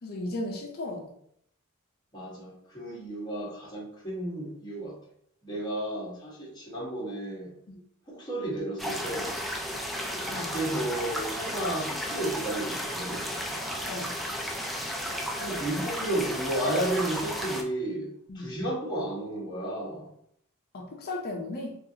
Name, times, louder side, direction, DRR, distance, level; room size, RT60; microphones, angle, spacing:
voice 1, 0.0-1.1 7.7-7.8 10.3-10.5 13.9-14.1 18.3-18.5 20.7-21.8, left 2 dB, 45° left, 0 dB, 0.6 m, -35 dB
voice 2, 2.1-5.0 5.4-7.5 8.1-9.4 10.3-13.2 15.3-20.1, right 1 dB, 20° left, -5 dB, 1.2 m, -33 dB
sound 1, 8.8-17.6, equal, ahead, 0.3 m, -33 dB
4.0 x 2.4 x 2.8 m, 0.69 s
head